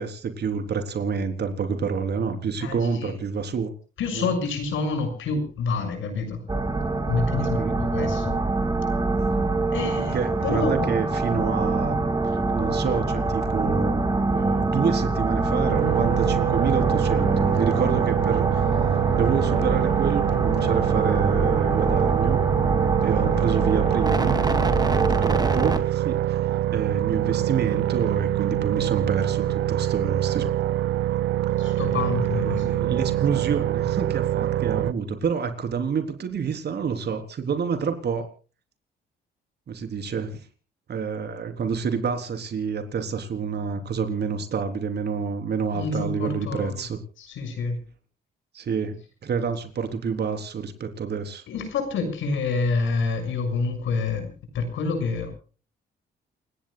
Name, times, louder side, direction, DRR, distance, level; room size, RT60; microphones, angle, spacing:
voice 1, 0.0-3.7 4.1-4.3 7.4-7.8 10.1-18.6 19.1-22.4 23.0-24.4 25.1-26.4 26.7-30.5 32.4-38.3 39.7-40.5 40.9-47.0 48.5-51.4, right 6 dB, 55° right, 7 dB, 3.8 m, -28 dB
voice 2, 2.6-3.2 4.0-6.4 7.1-8.3 9.7-10.2 10.4-10.9 11.3-11.5 31.6-32.8 45.7-46.8 47.2-47.8 51.5-55.3, left 4 dB, 75° left, 7 dB, 6.6 m, -28 dB
sound 1, 6.5-25.8, right 3 dB, 20° right, 2.6 m, -24 dB
sound 2, 15.7-34.9, right 13 dB, 80° right, 0.7 m, -25 dB
29.0 x 17.5 x 2.3 m, 0.38 s
cardioid pair, 90°, 20 cm